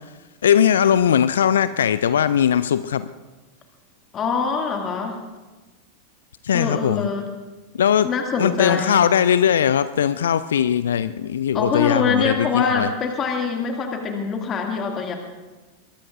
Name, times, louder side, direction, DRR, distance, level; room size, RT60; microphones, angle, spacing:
voice 1, 0.4-3.1 6.4-7.1 7.7-8.1 8.4-12.9, left 9 dB, 65° left, 15 dB, 0.4 m, -19 dB
voice 2, 4.1-5.2 6.5-7.3 8.0-9.0 11.5-15.1, left 5 dB, 25° left, 2 dB, 2.3 m, -24 dB
23.5 x 21.0 x 2.5 m, 1.2 s
figure-of-eight pair, 90°, 0 cm